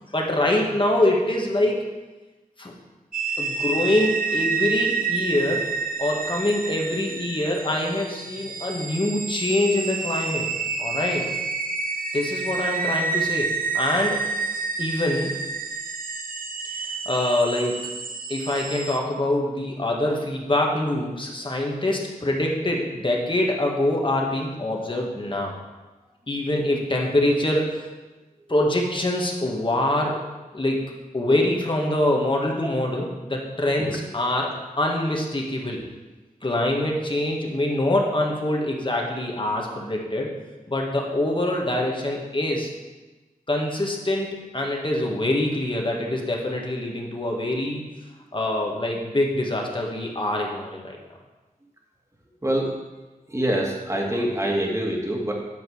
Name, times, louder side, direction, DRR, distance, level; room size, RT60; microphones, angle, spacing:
voice 1, 0.1-1.8 2.6-2.7 3.4-5.7 6.0-10.5 10.8-11.2 12.1-14.2 14.8-15.3 16.6-16.7 17.0-17.9 18.3-25.5 26.3-27.9 28.5-30.2 30.5-30.8 31.1-34.5 34.8-35.8 36.4-40.3 40.7-42.7 43.5-47.9 48.3-51.0, left 1 dB, 35° left, 0 dB, 1.7 m, -24 dB
sound 1, 3.1-19.0, right 4 dB, 70° right, 0.7 m, -29 dB
voice 2, 53.3-55.3, right 1 dB, 20° right, -1 dB, 1.9 m, -25 dB
9.2 x 5.1 x 6.3 m, 1.2 s
wide cardioid pair, 75°, 15 cm